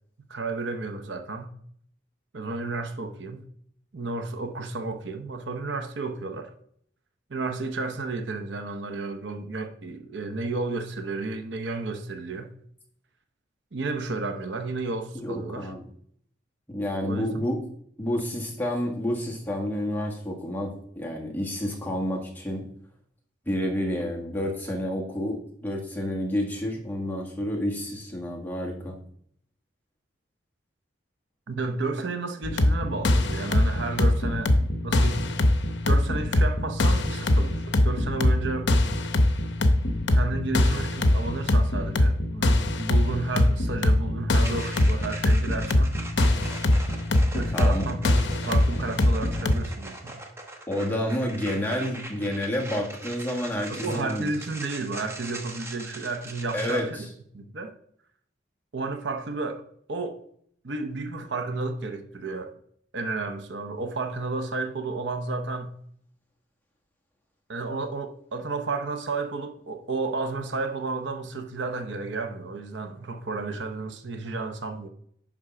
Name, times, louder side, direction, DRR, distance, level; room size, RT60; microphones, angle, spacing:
voice 1, 0.3-1.5 2.3-3.5 3.9-6.5 7.3-12.5 13.7-15.7 17.1-17.5 31.5-35.4 35.9-38.7 40.1-45.9 47.3-48.2 48.4-50.2 53.7-57.1 57.3-57.7 58.7-59.6 59.9-60.2 60.6-62.5 62.9-65.7 67.5-74.9, right 3 dB, 65° right, 0.8 m, -32 dB
voice 2, 15.1-15.8 16.7-17.6 18.0-22.6 23.5-28.9 47.5-47.8 50.7-54.3 56.5-56.8, left 1 dB, 10° left, 1.5 m, -29 dB
sound 1, 32.4-49.5, left 1 dB, 70° left, 0.8 m, -22 dB
sound 2, 44.4-56.8, right 2 dB, 15° right, 1.0 m, -41 dB
9.7 x 3.7 x 5.6 m
head